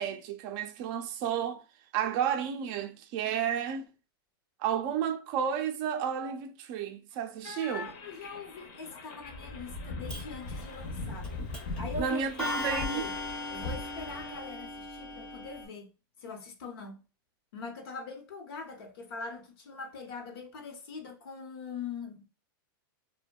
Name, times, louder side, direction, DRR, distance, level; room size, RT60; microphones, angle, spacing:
voice 1, 0.0-1.6 1.9-3.9 4.6-7.9 12.0-13.0, right 8 dB, 35° right, 0.4 m, -32 dB
voice 2, 7.4-11.3 11.8-12.2 12.5-13.1 13.5-15.9 16.2-17.0 17.5-22.3, left 4 dB, 80° left, 0.9 m, -42 dB
sound 1, 7.7-14.4, left 2 dB, 50° left, 0.7 m, -40 dB
Clock, 10.1-10.2 11.2-11.3 11.5-11.8 12.4-15.6, left 2 dB, 5° left, 0.6 m, -37 dB
2.6 x 2.2 x 2.2 m
supercardioid pair, 155°, 12 cm